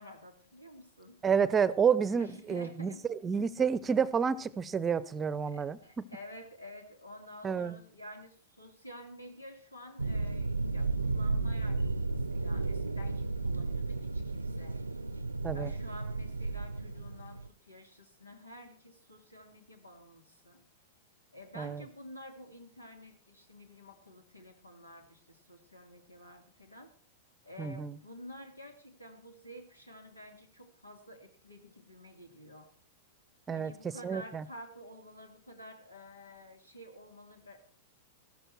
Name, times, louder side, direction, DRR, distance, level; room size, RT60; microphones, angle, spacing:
voice 1, 0.0-1.2 2.2-3.0 5.4-14.8 15.5-20.6 21.3-26.9 27.4-32.7 33.5-37.6, left 1 dB, 90° left, 3.0 m, -50 dB
voice 2, 1.2-6.1 7.4-7.8 15.4-15.7 21.6-21.8 27.6-28.0 33.5-33.7 34.0-34.4, right 6 dB, 20° right, 0.8 m, -30 dB
sound 1, 10.0-17.5, right 3 dB, 85° right, 0.7 m, -33 dB
14.5 x 13.5 x 4.5 m
figure-of-eight pair, 95°, 0 cm